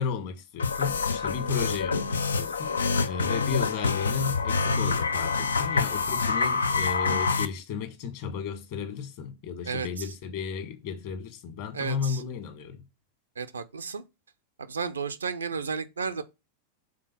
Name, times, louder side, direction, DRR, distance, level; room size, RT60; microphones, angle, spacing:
voice 1, 0.0-2.7 3.0-12.8, left 6 dB, 50° left, 1.6 m, -34 dB
sound 1, 0.6-7.5, left 4 dB, 75° left, 0.4 m, -26 dB
voice 2, 9.7-10.1 11.7-12.2 13.4-14.0 14.6-16.2, right 5 dB, 75° right, 0.6 m, -33 dB
6.2 x 3.9 x 5.9 m
figure-of-eight pair, 90°, 0 cm